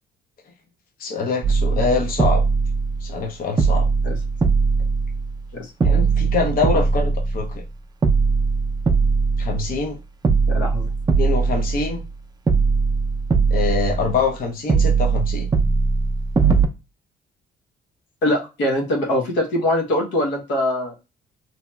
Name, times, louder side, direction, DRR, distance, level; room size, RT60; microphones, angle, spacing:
voice 1, 1.0-2.4 3.0-3.8 5.8-7.6 9.4-10.0 11.2-12.0 13.5-15.5, left 4 dB, 50° left, 1 dB, 0.6 m, -24 dB
sound 1, 1.4-3.3 3.6-5.5 5.8-7.7 8.0-9.9 10.2-12.1 12.5-14.4 14.7-16.7, right 4 dB, 20° right, 0.4 m, -20 dB
voice 2, 10.5-10.9 18.2-20.9, left 1 dB, 80° left, 1 dB, 0.9 m, -22 dB
2.9 x 2.7 x 2.2 m, 0.28 s
cardioid pair, 85°, 19 cm